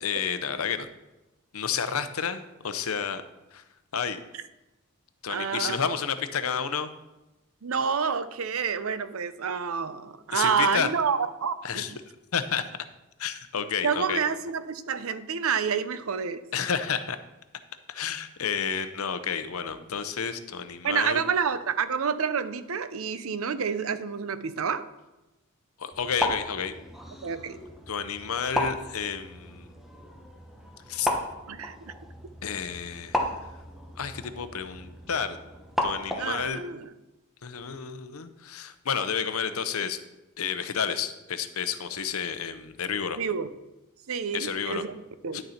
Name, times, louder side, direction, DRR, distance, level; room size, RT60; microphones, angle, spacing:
voice 1, 0.0-0.9 1.5-3.2 3.5-3.6 3.9-4.2 5.2-6.9 10.3-10.9 11.6-11.9 12.3-12.7 13.2-14.2 16.5-17.2 17.9-21.2 25.8-26.7 27.9-29.7 30.9-31.1 32.4-33.3 34.0-35.4 35.8-36.6 37.4-40.0 40.4-43.2 44.3-44.8 45.3-45.4, left 7 dB, 75° left, 11 dB, 0.7 m, -30 dB
voice 2, 5.3-5.8 7.6-12.0 13.8-16.4 20.8-24.8 27.2-27.6 31.5-31.9 36.2-36.9 43.2-43.5 44.1-44.9 45.2-45.4, right 6 dB, 70° right, 13 dB, 0.6 m, -28 dB
sound 1, 25.9-36.5, left 1 dB, ahead, 1.0 m, -34 dB
10.5 x 6.6 x 4.3 m, 0.99 s
head